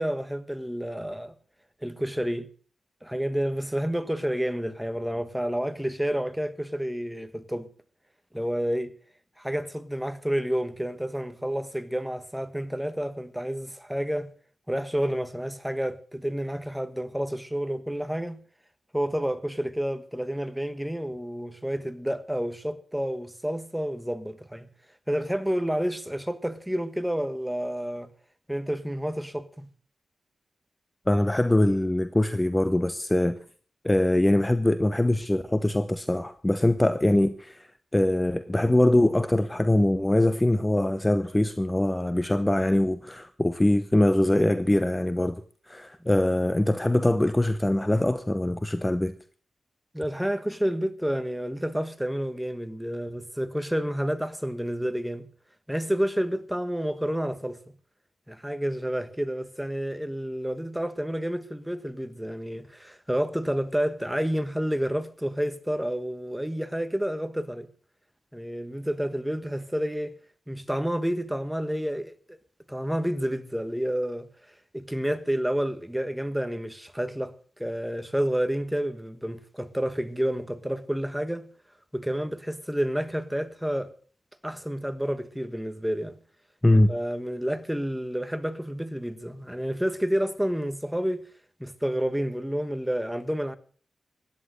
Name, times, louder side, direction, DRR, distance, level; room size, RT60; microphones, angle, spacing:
voice 1, 0.0-1.3 1.8-2.5 3.0-7.7 8.3-8.9 9.4-14.3 14.7-18.4 18.9-24.7 25.1-28.1 28.5-29.7 49.9-55.3 55.7-57.6 58.3-67.7 68.3-70.2 70.5-72.4 72.7-74.3 74.7-81.5 81.9-83.9 84.4-86.2 86.9-91.2 91.6-93.6, equal, 5° right, 1.4 m, -29 dB
voice 2, 31.1-33.4 33.8-37.7 37.9-45.4 45.7-49.1 86.6-86.9, left 1 dB, 15° left, 0.9 m, -23 dB
16.0 x 11.0 x 6.5 m
cardioid pair, 70°, 0 cm